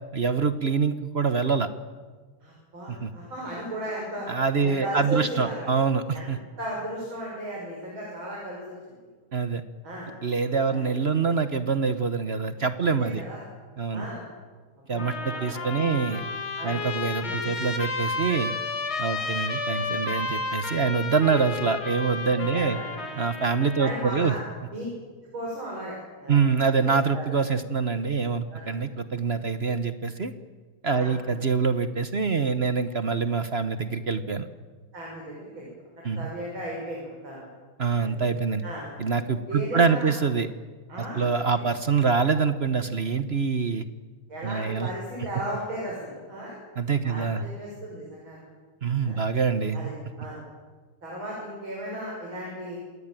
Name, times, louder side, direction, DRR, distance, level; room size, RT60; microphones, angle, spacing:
voice 1, 0.1-1.7 2.9-3.1 4.3-6.4 9.3-9.6 10.2-13.2 13.8-14.0 14.9-16.2 16.6-18.5 19.0-22.8 23.2-24.3 26.3-30.3 30.8-34.5 36.0-36.3 37.8-38.6 39.0-40.5 41.1-43.8 44.4-44.9 46.8-47.4 48.8-49.9, right 5 dB, 45° right, 11 dB, 0.9 m, -25 dB
voice 2, 2.4-4.3 4.6-5.7 6.1-6.3 6.6-8.8 9.8-10.1 10.7-10.9 12.8-13.4 13.9-14.2 14.9-16.0 16.6-16.8 17.2-17.6 19.1-19.2 22.3-22.9 23.8-24.4 24.7-24.8 25.3-26.8 27.1-27.3 28.5-28.7 30.9-31.1 34.9-35.7 36.0-37.4 38.0-38.2 38.6-38.9 39.5-40.1 40.9-41.3 41.7-41.8 44.3-46.6 47.0-48.4 49.0-49.2 49.7-50.4 51.0-52.8, right 1 dB, 75° right, -3 dB, 7.4 m, -36 dB
Trumpet, 14.9-24.1, left 3 dB, 90° left, 3.9 m, -32 dB
27.5 x 20.0 x 9.1 m, 1.4 s
omnidirectional pair, 2.2 m